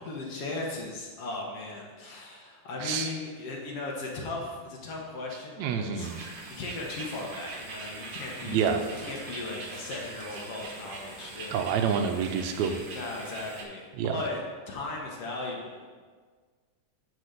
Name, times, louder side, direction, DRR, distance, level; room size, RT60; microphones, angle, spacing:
voice 1, 0.0-8.7 9.0-11.6 12.9-16.0, left 2 dB, 60° left, -2 dB, 1.9 m, -37 dB
voice 2, 5.6-6.1 8.5-8.8 11.5-12.8 14.0-14.2, right 7 dB, 75° right, 5 dB, 1.7 m, -27 dB
sound 1, 6.0-13.6, right 3 dB, 55° right, 1.4 m, -42 dB
9.1 x 4.5 x 6.7 m, 1.5 s
omnidirectional pair, 3.6 m